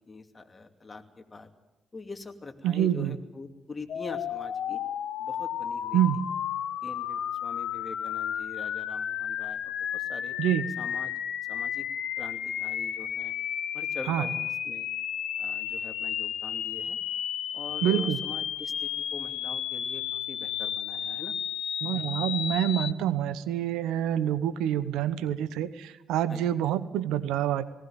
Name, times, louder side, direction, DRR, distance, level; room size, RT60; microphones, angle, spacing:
voice 1, 0.0-1.5 1.9-4.8 5.2-6.0 6.8-10.3 10.8-11.1 11.4-11.9 12.2-13.3 13.7-14.9 15.4-17.0 17.5-21.3 26.3-26.4, left 3 dB, 30° left, 5 dB, 2.7 m, -44 dB
voice 2, 2.6-3.1 5.9-6.2 10.4-10.7 14.1-14.2 17.8-18.2 21.8-27.7, right 11 dB, 75° right, 15 dB, 1.0 m, -27 dB
sound 1, 3.9-22.9, left 9 dB, 70° left, 1.2 m, -33 dB
19.0 x 17.5 x 9.0 m, 1.0 s
hypercardioid pair, 45°, 0 cm